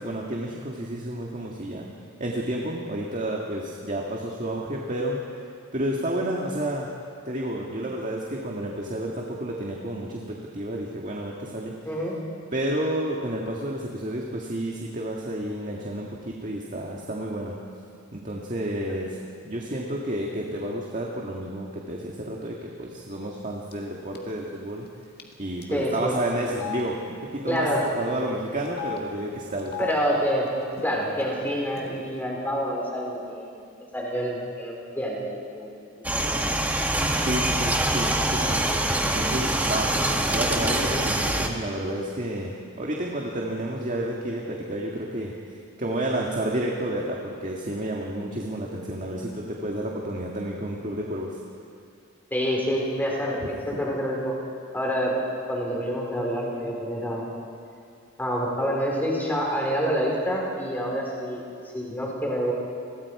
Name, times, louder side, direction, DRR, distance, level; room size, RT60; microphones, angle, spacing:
voice 1, 0.0-1.9 2.2-5.2 5.7-6.9 7.3-11.7 12.5-17.6 18.1-19.2 19.4-24.9 25.4-27.7 28.0-29.7 37.2-38.6 39.1-39.9 40.3-45.3 45.8-51.4 53.7-53.8, right 1 dB, 40° right, -1 dB, 1.9 m, -30 dB
voice 2, 11.8-12.2 25.7-26.2 27.5-27.9 29.8-30.5 30.8-33.6 33.9-35.2 35.5-36.4 52.3-54.3 54.7-55.2 55.5-57.2 58.2-61.4 61.7-62.5, equal, 10° left, -2 dB, 4.5 m, -27 dB
Telephone, 23.7-23.9 24.2-24.3 25.2-25.3 25.6-25.7 26.5-26.8 27.6-27.9 28.7-29.0 29.6-29.9 30.7-30.8 31.1-31.8, left 12 dB, 50° left, 2.1 m, -35 dB
sound 1, 36.0-41.5, right 1 dB, 10° right, 1.6 m, -24 dB
30.0 x 22.0 x 4.9 m, 2.4 s
head